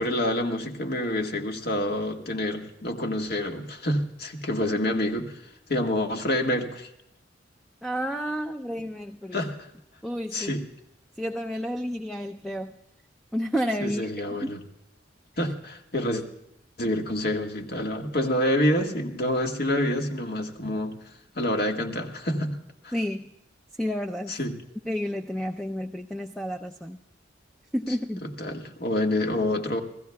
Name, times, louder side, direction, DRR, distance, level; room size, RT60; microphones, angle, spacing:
voice 1, 0.0-5.4 5.7-6.9 9.3-9.7 10.3-10.6 13.8-14.6 15.4-16.2 16.8-20.9 21.3-22.6 22.8-22.9 24.3-24.6 28.2-29.8, left 1 dB, 55° left, 3 dB, 1.7 m, -27 dB
voice 2, 7.8-9.4 10.0-10.5 11.2-12.7 13.3-14.1 14.4-14.5 22.9-23.3 23.8-24.4 24.8-27.0 27.7-28.3, equal, ahead, 4 dB, 0.5 m, -30 dB
29.5 x 15.5 x 2.3 m, 0.82 s
head